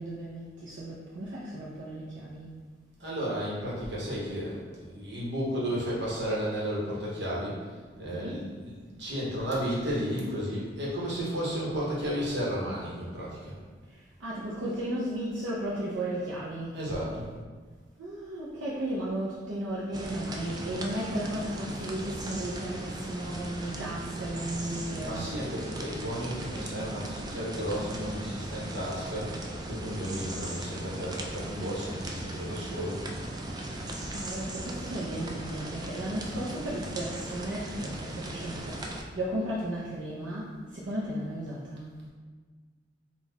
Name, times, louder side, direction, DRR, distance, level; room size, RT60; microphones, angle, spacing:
voice 1, 0.0-2.5 8.1-8.4 13.9-16.8 18.0-25.3 34.1-42.0, right 1 dB, 90° right, -7 dB, 0.6 m, -35 dB
voice 2, 3.0-7.7 8.0-13.6 16.7-17.3 25.0-29.3 29.7-33.0, equal, 65° right, -6 dB, 1.2 m, -33 dB
sound 1, 19.9-39.0, right 1 dB, 20° right, 0.3 m, -38 dB
4.0 x 2.4 x 4.0 m, 1.5 s
head